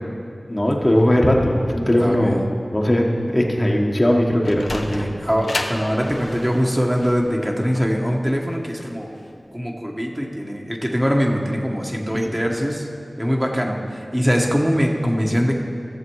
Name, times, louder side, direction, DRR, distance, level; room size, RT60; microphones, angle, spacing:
voice 1, 0.5-2.3 2.7-4.6, left 1 dB, 30° left, -1 dB, 1.4 m, -18 dB
voice 2, 2.0-2.4 4.7-9.1 9.5-12.9 13.2-15.5, equal, 10° right, 0 dB, 1.2 m, -22 dB
Sliding door, 4.1-9.3, left 2 dB, 65° left, 0.9 m, -32 dB
15.5 x 6.7 x 4.8 m, 2.6 s
wide cardioid pair, 45°, 0 cm